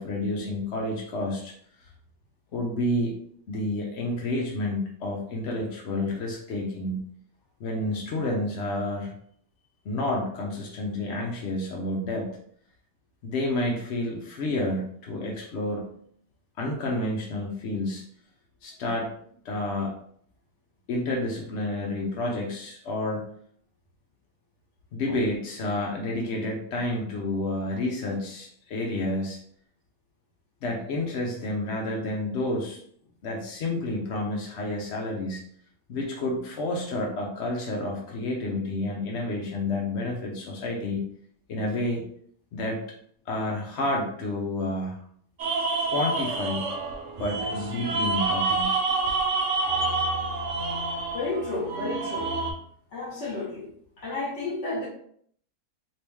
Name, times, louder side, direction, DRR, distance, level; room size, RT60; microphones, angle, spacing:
voice 1, 0.0-1.5 2.5-3.2 3.5-7.0 7.6-9.1 9.8-12.4 13.2-15.9 16.6-18.0 18.6-19.1 19.4-19.9 20.9-23.3 24.9-29.4 30.6-32.8 33.2-35.4 35.9-41.0 41.5-42.0 42.5-42.9 43.3-45.0 45.9-46.7 47.2-48.7, left 1 dB, 65° left, -1 dB, 0.7 m, -30 dB
sound 1, 45.4-52.5, right 3 dB, 65° right, 0.7 m, -28 dB
voice 2, 51.1-52.3 52.9-53.7 54.0-54.9, left 2 dB, 45° left, -3 dB, 1.4 m, -31 dB
3.0 x 2.9 x 3.4 m, 0.62 s
omnidirectional pair, 1.8 m